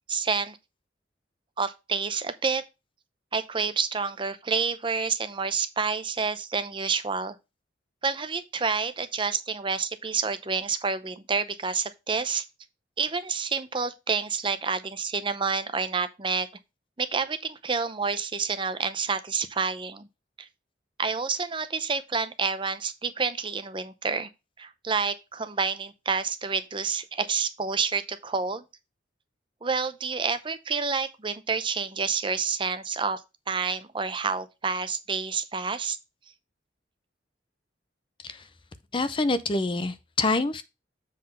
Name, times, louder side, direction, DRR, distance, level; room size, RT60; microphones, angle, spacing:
voice 1, 0.1-0.6 1.6-2.6 3.3-7.3 8.0-12.4 13.0-16.5 17.0-20.1 20.4-20.5 21.0-24.3 24.6-28.6 29.6-33.2 33.5-36.0, right 5 dB, 25° right, 0.6 m, -28 dB
voice 2, 38.9-40.6, left 3 dB, 30° left, 0.5 m, -26 dB
7.5 x 4.1 x 5.4 m
head